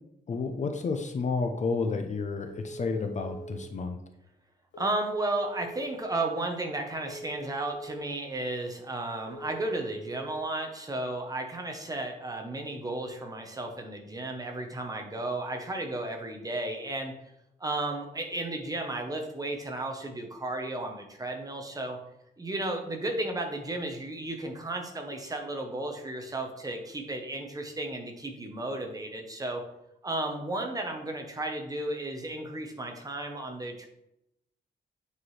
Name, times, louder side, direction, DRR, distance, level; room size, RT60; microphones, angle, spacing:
voice 1, 0.3-4.0, left 4 dB, 40° left, 5 dB, 0.6 m, -31 dB
Telephone, 2.5-3.6 4.7-5.8 7.0-8.1 9.3-10.4, right 2 dB, 85° left, 1.3 m, -43 dB
voice 2, 4.8-17.1 17.6-22.0 22.4-29.6 30.0-33.9, right 2 dB, 20° right, 3 dB, 0.9 m, -34 dB
8.5 x 4.7 x 3.2 m, 0.82 s
wide cardioid pair, 165°, 19 cm